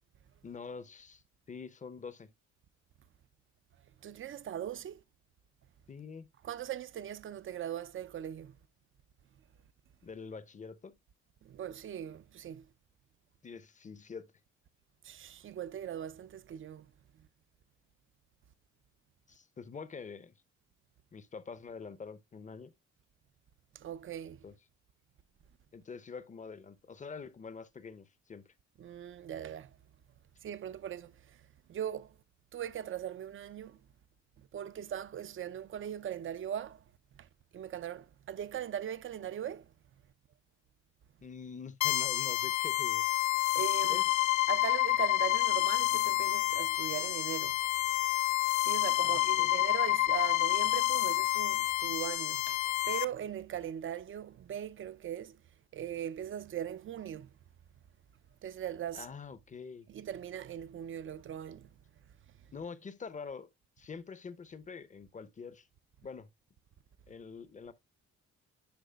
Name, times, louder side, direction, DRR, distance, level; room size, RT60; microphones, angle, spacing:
voice 1, 0.4-1.2 1.5-2.3 5.9-6.3 10.0-10.9 13.4-14.3 19.3-20.3 21.1-22.7 24.4-24.5 25.7-28.4 41.2-43.0 43.9-44.0 49.0-49.5 58.9-59.9 62.5-63.5 63.8-65.7 66.0-66.3 67.1-67.7, left 5 dB, 25° left, 0.6 m, -45 dB
voice 2, 4.0-5.0 6.4-8.6 11.4-12.7 15.0-16.9 17.2-17.3 23.7-24.4 28.8-29.8 30.4-31.4 31.7-32.2 32.5-33.8 34.4-36.8 37.2-39.7 43.5-44.0 44.5-47.6 48.6-55.4 55.7-57.3 58.4-59.1 59.9-61.7, right 10 dB, 45° right, 0.4 m, -40 dB
sound 1, 41.8-53.0, left 16 dB, 70° left, 0.5 m, -29 dB
10.5 x 4.9 x 2.2 m
cardioid pair, 90°, 30 cm